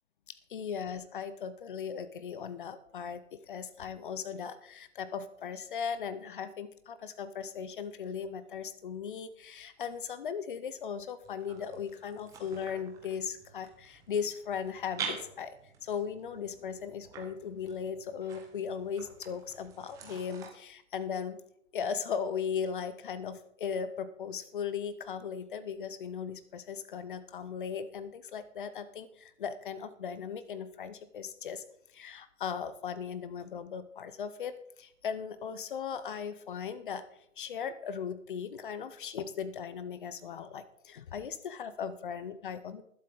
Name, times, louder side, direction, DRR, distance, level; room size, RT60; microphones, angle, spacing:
voice 1, 0.3-15.6 15.8-21.4 21.7-31.6 31.9-37.0 37.4-42.8, left 7 dB, 40° left, 13 dB, 0.9 m, -38 dB
sound 1, 11.2-20.5, right 6 dB, 10° right, 1.0 m, -46 dB
20.0 x 7.9 x 3.8 m, 0.72 s
figure-of-eight pair, 140°, 40 cm